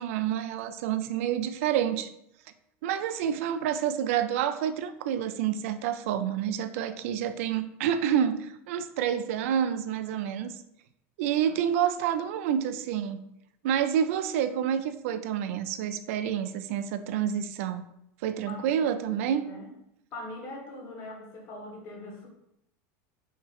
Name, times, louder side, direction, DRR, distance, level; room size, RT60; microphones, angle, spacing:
voice 1, 0.0-2.1 2.8-10.5 11.2-13.2 13.6-17.8 18.2-19.4, right 9 dB, 65° right, 11 dB, 0.4 m, -28 dB
voice 2, 18.5-19.7 20.1-22.3, left 2 dB, 35° left, -1 dB, 1.7 m, -42 dB
5.8 x 3.1 x 5.5 m, 0.78 s
supercardioid pair, 180°, 8 cm